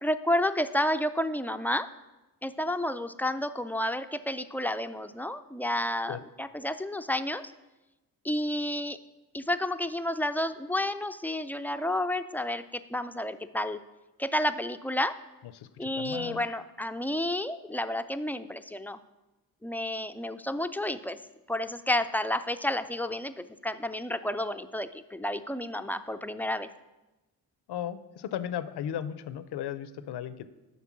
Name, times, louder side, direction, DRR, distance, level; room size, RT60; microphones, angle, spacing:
voice 1, 0.0-1.9 2.4-7.5 8.2-9.0 9.3-13.8 14.2-15.1 15.8-19.0 19.6-21.2 21.5-26.7, left 1 dB, 5° left, 10 dB, 0.4 m, -30 dB
voice 2, 15.6-16.4 27.7-30.4, left 10 dB, 70° left, 14 dB, 0.6 m, -36 dB
8.2 x 5.4 x 6.0 m, 1.1 s
supercardioid pair, 55°, 42 cm